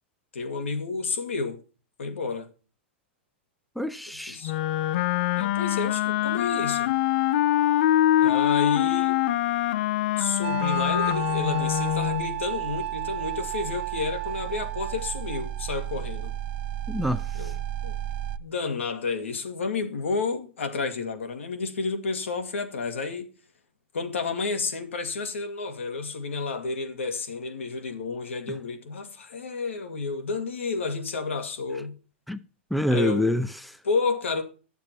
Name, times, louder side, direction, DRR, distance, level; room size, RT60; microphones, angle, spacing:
voice 1, 0.3-1.6 2.0-2.5 4.3-4.5 5.4-6.9 8.2-9.2 10.2-16.3 17.3-17.6 17.8-17.9 18.4-23.3 23.9-32.0 32.9-33.3 33.8-34.4, left 4 dB, 85° left, 2.1 m, -30 dB
voice 2, 3.8-4.4 16.9-17.5 32.3-32.4 32.7-33.8, left 1 dB, ahead, 0.6 m, -27 dB
Wind instrument woodwind instrument, 4.4-12.3, left 13 dB, 55° left, 0.6 m, -24 dB
sound 1, 10.4-18.4, right 13 dB, 55° right, 0.6 m, -32 dB
11.0 x 7.0 x 4.5 m
hypercardioid pair, 120°, 7 cm